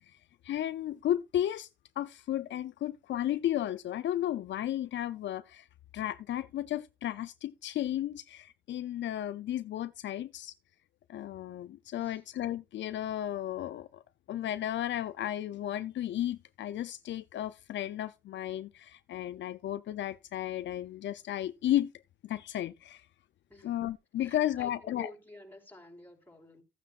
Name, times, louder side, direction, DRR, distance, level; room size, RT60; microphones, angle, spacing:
voice 1, 0.4-1.7 2.0-5.7 5.9-10.5 11.1-14.0 14.3-21.9 22.2-23.1 23.6-25.1, left 12 dB, 65° left, 0.6 m, -34 dB
voice 2, 24.2-26.6, left 1 dB, 10° left, 4.4 m, -50 dB
15.0 x 9.2 x 2.5 m
cardioid pair, 90°, 20 cm